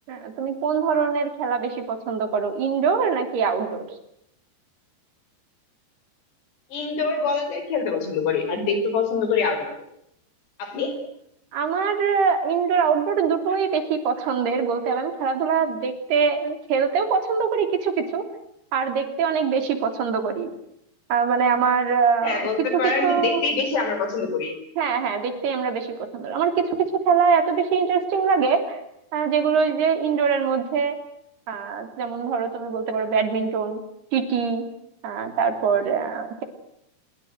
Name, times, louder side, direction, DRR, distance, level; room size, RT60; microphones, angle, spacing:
voice 1, 0.1-3.8 11.5-18.2 18.7-20.5 21.1-23.4 24.8-26.7 27.0-28.8 29.1-31.0 31.5-33.8 34.1-34.6 35.0-36.4, right 6 dB, 75° right, 7 dB, 5.1 m, -23 dB
voice 2, 6.7-9.7 10.6-11.0 22.2-24.5, left 4 dB, 85° left, 8 dB, 7.2 m, -25 dB
26.0 x 23.0 x 8.0 m, 0.78 s
omnidirectional pair, 4.7 m